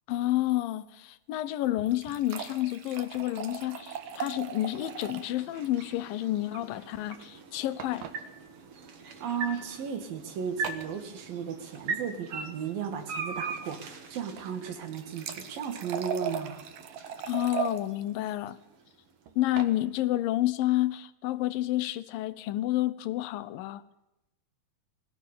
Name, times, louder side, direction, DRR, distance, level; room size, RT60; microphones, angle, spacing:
voice 1, 0.1-8.1 17.2-18.6 19.4-23.8, left 15 dB, 85° left, 2.7 m, -29 dB
sound 1, 1.6-5.4 5.6-5.7 6.0-6.1 7.8-8.2 9.1-9.3 10.6-10.9 14.7-17.8 19.3-19.7, right 8 dB, 75° right, 3.3 m, -38 dB
sound 2, 3.1-19.2, right 4 dB, 45° right, 2.6 m, -42 dB
voice 2, 9.2-16.6, right 7 dB, 90° right, 4.1 m, -35 dB
21.5 x 16.5 x 8.7 m
omnidirectional pair, 4.0 m